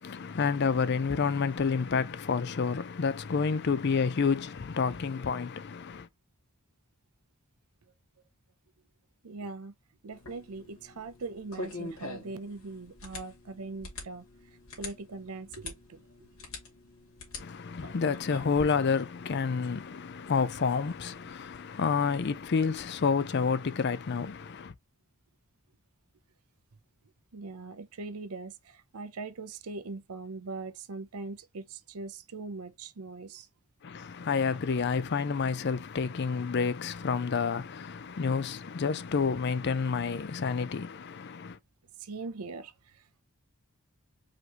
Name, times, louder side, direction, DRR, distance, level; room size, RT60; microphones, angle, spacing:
voice 1, 0.0-6.1 17.4-24.7 33.8-41.6, left 5 dB, 50° left, 0.5 m, -29 dB
voice 2, 9.2-9.7 10.0-14.3 14.8-16.3 27.3-33.5 42.0-43.2, right 3 dB, 80° right, 0.6 m, -41 dB
sound 1, 10.1-22.9, left 2 dB, 65° left, 2.5 m, -46 dB
5.0 x 3.0 x 3.0 m
head